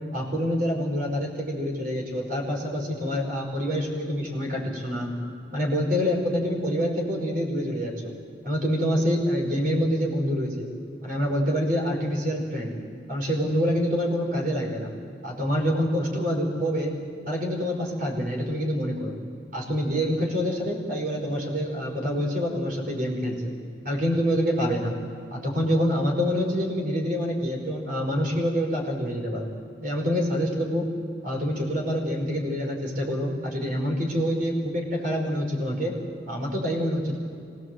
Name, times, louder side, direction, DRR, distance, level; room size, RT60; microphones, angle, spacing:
voice 1, 0.1-5.1 5.5-8.1 8.4-10.7 11.0-12.7 13.1-14.9 15.2-16.9 17.3-19.2 19.5-23.5 23.9-25.0 25.3-29.5 29.8-30.9 31.2-36.0 36.3-37.2, equal, 45° right, 1 dB, 5.1 m, -26 dB
25.0 x 19.0 x 7.9 m, 2.5 s
head